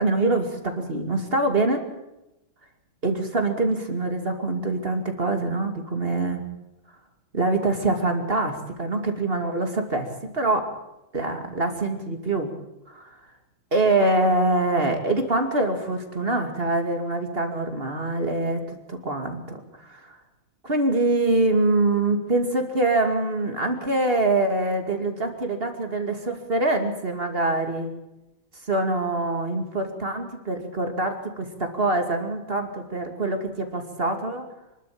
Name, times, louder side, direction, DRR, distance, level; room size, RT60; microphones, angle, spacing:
voice 1, 0.0-1.8 3.0-6.4 7.3-10.1 10.3-10.7 11.1-12.5 12.9-13.2 13.7-20.2 20.6-27.9 28.6-34.5, right 2 dB, 30° right, 5 dB, 2.6 m, -24 dB
26.0 x 12.5 x 8.7 m, 0.94 s
omnidirectional pair, 2.2 m